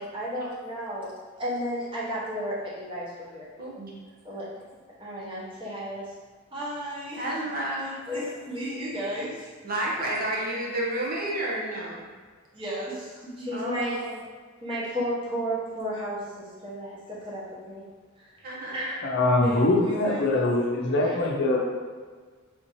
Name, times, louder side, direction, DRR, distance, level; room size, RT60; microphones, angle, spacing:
voice 1, 0.0-3.4 4.2-4.5 5.0-6.1 6.5-7.3 7.9-9.5 12.5-14.0 14.6-17.8 18.2-18.4 18.7-18.9 19.4-20.5 20.9-21.2, equal, 25° right, -8 dB, 1.0 m, -33 dB
voice 2, 3.6-3.9 7.2-8.0 9.6-12.1 13.5-14.2 18.4-18.8, right 1 dB, 45° right, -4 dB, 0.8 m, -31 dB
voice 3, 19.0-21.6, left 2 dB, 55° left, -1 dB, 0.6 m, -23 dB
3.5 x 2.8 x 3.0 m, 1.5 s
head